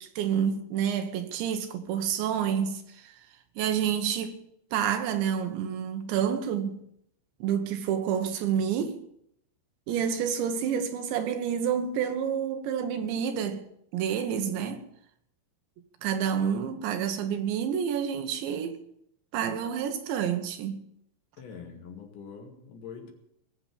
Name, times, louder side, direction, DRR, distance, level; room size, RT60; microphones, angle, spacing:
voice 1, 0.2-3.1 3.6-4.4 4.7-6.8 7.4-9.0 9.9-13.6 13.9-14.8 16.0-18.8 19.3-20.8, right 8 dB, 75° right, 3.3 m, -28 dB
voice 2, 21.4-23.1, left 6 dB, 70° left, 4.5 m, -44 dB
20.0 x 7.7 x 8.6 m
omnidirectional pair, 5.5 m